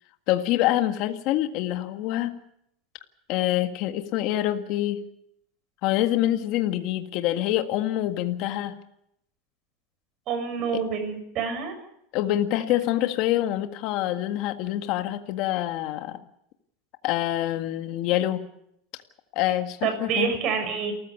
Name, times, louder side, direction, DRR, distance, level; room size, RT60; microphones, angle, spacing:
voice 1, 0.3-2.3 3.3-5.0 5.8-8.7 12.1-16.2 17.0-18.4 19.3-20.3, left 13 dB, 55° left, 7 dB, 1.8 m, -26 dB
voice 2, 10.3-11.7 12.8-12.9 19.8-20.9, right 6 dB, 45° right, 8 dB, 6.6 m, -27 dB
28.5 x 14.5 x 8.4 m, 0.76 s
supercardioid pair, 145°, 0 cm